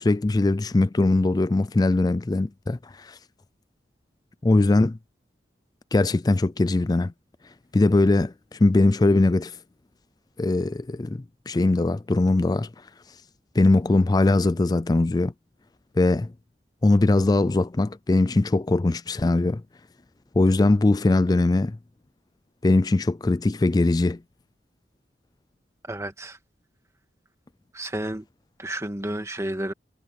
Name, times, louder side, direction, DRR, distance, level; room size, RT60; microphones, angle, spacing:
voice 1, 0.0-3.2 4.4-5.0 5.9-7.1 7.7-9.6 10.4-12.7 13.5-15.3 16.0-16.3 16.8-19.6 20.4-21.8 22.6-24.2, left 2 dB, 20° left, 0.4 m, -21 dB
voice 2, 25.9-26.4 27.7-28.3 28.6-29.7, right 1 dB, 15° right, 1.9 m, -31 dB
head